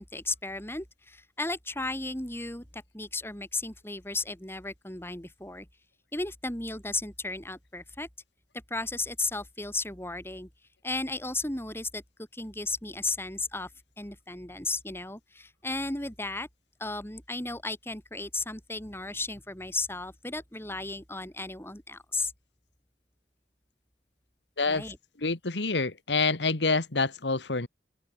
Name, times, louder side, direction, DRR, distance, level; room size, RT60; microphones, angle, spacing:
voice 1, 0.0-5.7 6.1-8.1 8.7-10.5 10.8-12.0 12.3-13.7 14.0-16.5 16.8-22.3 24.7-25.0, left 2 dB, 15° left, 4.4 m, -34 dB
voice 2, 25.2-27.7, left 3 dB, 85° left, 1.8 m, -27 dB
head